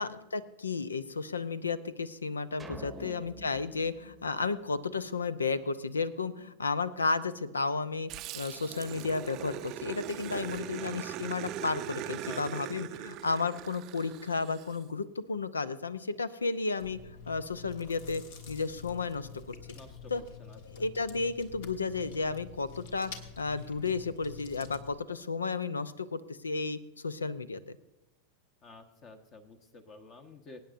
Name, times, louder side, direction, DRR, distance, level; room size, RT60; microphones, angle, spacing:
voice 1, 0.0-19.3 20.1-20.2 20.7-26.8 27.0-27.8, left 4 dB, 75° left, 17 dB, 0.6 m, -33 dB
sound 1, 2.6-5.1, right 2 dB, 10° right, 0.9 m, -48 dB
voice 2, 2.8-3.3 10.3-11.1 12.2-12.8 19.7-20.9 28.6-30.6, left 3 dB, 35° left, 7 dB, 1.1 m, -52 dB
Growling, 8.1-14.8, right 11 dB, 40° right, 0.5 m, -40 dB
Chewing mastication, 16.8-24.9, left 6 dB, 55° left, 1.4 m, -48 dB
23.5 x 9.3 x 2.6 m, 0.99 s
figure-of-eight pair, 90°, 0 cm